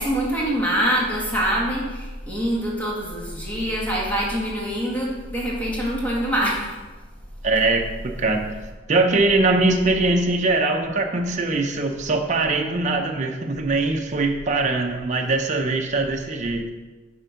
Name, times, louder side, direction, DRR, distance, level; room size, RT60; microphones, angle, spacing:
voice 1, 0.0-6.7, equal, 10° left, -5 dB, 1.9 m, -24 dB
voice 2, 7.4-7.9 8.2-8.5 8.9-16.6, right 3 dB, 40° right, 2 dB, 0.7 m, -21 dB
8.8 x 4.5 x 5.1 m, 1.3 s
head